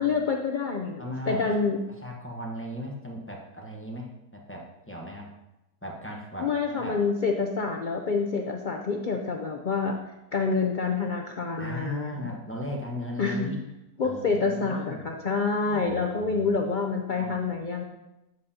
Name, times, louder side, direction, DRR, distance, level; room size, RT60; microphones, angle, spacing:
voice 1, 0.0-1.8 6.4-10.0 10.3-12.3 13.2-13.5 14.0-17.8, left 4 dB, 80° left, 2 dB, 0.4 m, -27 dB
voice 2, 1.0-1.4 2.0-4.1 4.5-5.3 5.8-7.0 11.6-13.6 14.0-15.1 15.7-16.5 17.2-17.4, equal, 10° left, -2 dB, 0.9 m, -37 dB
9.3 x 7.7 x 2.8 m, 0.95 s
omnidirectional pair, 1.7 m